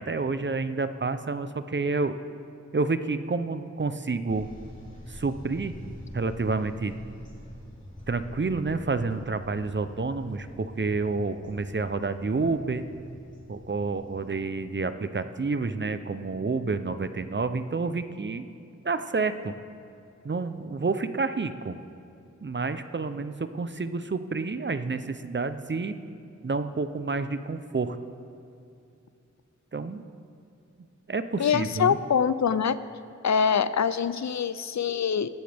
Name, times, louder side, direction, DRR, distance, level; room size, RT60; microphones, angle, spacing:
voice 1, 0.0-2.2 2.7-4.5 5.1-5.8 6.1-6.9 8.1-12.8 13.5-18.4 18.8-19.5 20.2-21.8 22.4-26.0 26.4-28.0 29.7-30.0 31.1-32.0, right 3 dB, 40° right, 11 dB, 0.6 m, -29 dB
sound 1, 4.3-14.3, equal, 25° left, 3.5 m, -45 dB
voice 2, 31.4-32.8 33.2-35.3, left 7 dB, 70° left, 14 dB, 0.5 m, -24 dB
17.5 x 12.0 x 3.5 m, 2.5 s
wide cardioid pair, 55°, 29 cm